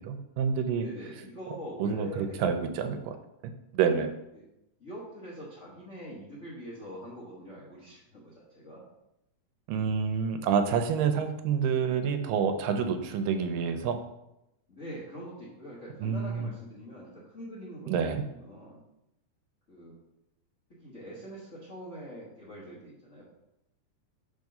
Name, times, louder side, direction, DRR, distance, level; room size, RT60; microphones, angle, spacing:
voice 1, 0.0-0.8 1.8-3.2 3.7-4.1 9.7-14.0 16.0-16.5 17.9-18.2, right 6 dB, 85° right, 8 dB, 2.2 m, -28 dB
voice 2, 0.7-2.5 4.3-4.4 4.8-8.8 14.7-18.8 19.7-19.9 20.8-23.2, equal, 60° left, -8 dB, 0.7 m, -44 dB
4.8 x 4.7 x 5.3 m, 0.87 s
omnidirectional pair, 3.9 m